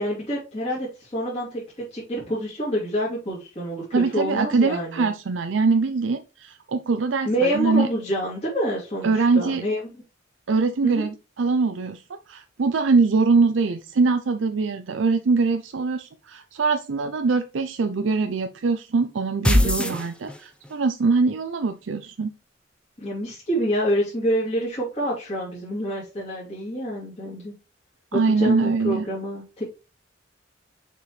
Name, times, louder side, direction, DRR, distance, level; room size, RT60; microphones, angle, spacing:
voice 1, 0.0-5.1 7.2-10.0 10.8-11.1 19.6-19.9 23.0-27.5 28.1-29.6, equal, 35° left, -7 dB, 2.8 m, -27 dB
voice 2, 3.9-7.9 9.0-9.6 10.5-22.3 28.1-29.0, right 4 dB, 75° right, 8 dB, 0.5 m, -23 dB
sound 1, 19.4-20.7, left 1 dB, 5° left, 0.7 m, -21 dB
6.6 x 4.6 x 3.2 m, 0.30 s
head